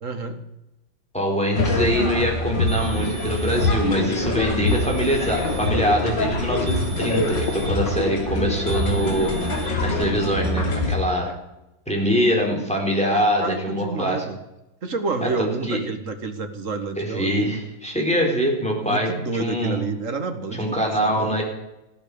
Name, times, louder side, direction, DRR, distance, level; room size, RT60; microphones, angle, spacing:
voice 1, 0.0-0.4 4.1-4.5 11.2-11.4 13.0-14.4 14.8-17.6 18.8-21.4, right 4 dB, 45° right, 7 dB, 1.8 m, -30 dB
voice 2, 1.1-9.3 9.8-11.3 11.9-14.2 15.2-15.8 17.0-19.1 19.4-19.8 20.6-21.4, equal, 5° left, 0 dB, 4.1 m, -23 dB
sound 1, 1.5-10.9, left 2 dB, 65° left, 3.1 m, -24 dB
sound 2, 2.7-3.8 4.7-5.8 6.7-7.8 8.7-9.7, right 5 dB, 60° right, 3.6 m, -40 dB
16.0 x 11.5 x 6.9 m, 0.94 s
omnidirectional pair, 2.1 m